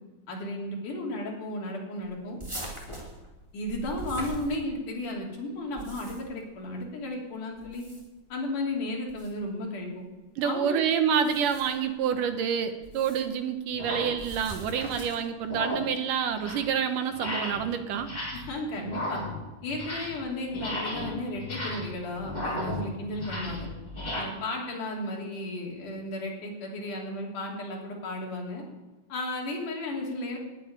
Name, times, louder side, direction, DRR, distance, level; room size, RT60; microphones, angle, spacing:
voice 1, 0.3-2.4 2.9-3.0 3.5-7.8 8.3-10.0 10.4-10.8 18.3-19.2 19.6-23.7 24.1-28.6 29.1-30.4, left 1 dB, 60° left, -1 dB, 4.4 m, -34 dB
sound 1, 2.4-5.0 5.6-6.4 7.6-8.3 9.1-9.3 11.1-11.9 12.8-13.3 14.2-15.3, right 1 dB, 10° right, 2.6 m, -41 dB
voice 2, 10.4-18.1, right 7 dB, 70° right, 8 dB, 2.4 m, -28 dB
sound 2, 12.1-12.3 13.0-13.1 13.7-14.2 14.5-15.0 15.4-16.0 16.3-16.7 17.1-17.7 18.0-18.5 18.8-20.2 20.5-24.2, left 1 dB, 25° left, 7.2 m, -35 dB
11.0 x 10.5 x 10.0 m, 1.1 s
omnidirectional pair, 4.3 m